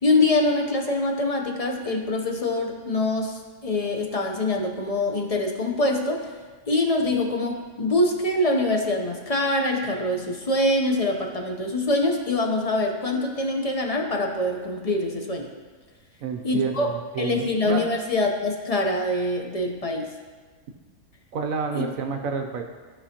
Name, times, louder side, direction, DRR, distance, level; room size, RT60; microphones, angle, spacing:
voice 1, 0.0-6.3 6.7-15.5 16.4-16.9 17.2-20.1 21.7-21.9, left 2 dB, 35° left, 2 dB, 0.6 m, -24 dB
voice 2, 16.2-17.8 21.3-22.6, right 5 dB, 70° right, 4 dB, 1.0 m, -29 dB
15.0 x 5.1 x 2.9 m, 1.4 s
omnidirectional pair, 1.6 m